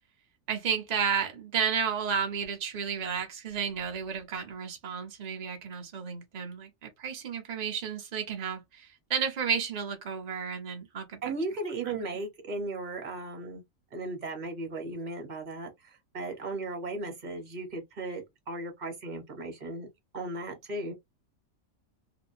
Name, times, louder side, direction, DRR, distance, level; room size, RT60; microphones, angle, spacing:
voice 1, 0.5-11.3 11.8-12.0, right 7 dB, 65° right, 0.4 m, -32 dB
voice 2, 11.2-13.6 13.9-19.9 20.1-20.9, right 2 dB, 40° right, 0.7 m, -36 dB
2.8 x 2.2 x 2.2 m
omnidirectional pair, 1.5 m